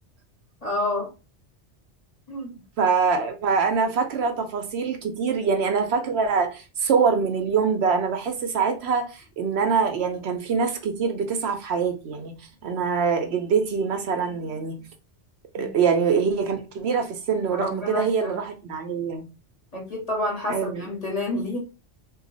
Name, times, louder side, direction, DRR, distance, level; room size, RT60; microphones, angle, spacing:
voice 1, 0.6-1.1 2.3-2.6 15.5-15.7 17.5-18.3 19.7-21.6, left 2 dB, 35° left, 1.3 m, -29 dB
voice 2, 2.8-14.9 15.5-19.3 20.5-20.8, right 5 dB, 70° right, 0.8 m, -24 dB
2.6 x 2.3 x 3.8 m
omnidirectional pair, 1.2 m